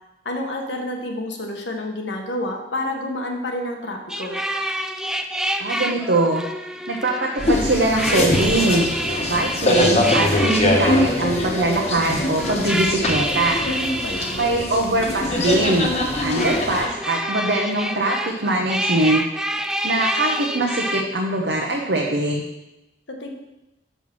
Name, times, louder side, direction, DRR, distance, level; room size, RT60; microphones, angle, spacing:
voice 1, 0.2-4.4 13.7-14.4 23.1-23.3, left 1 dB, 85° left, 2 dB, 1.2 m, -29 dB
sound 1, 4.1-21.0, right 1 dB, 5° right, 0.3 m, -28 dB
voice 2, 5.6-6.4 6.9-8.9 9.2-13.6 14.4-15.9 16.2-19.2 19.8-22.4, right 2 dB, 70° right, -1 dB, 0.9 m, -22 dB
sound 2, 7.4-16.9, left 2 dB, 35° left, 1.1 m, -23 dB
6.3 x 5.5 x 6.1 m, 0.95 s
head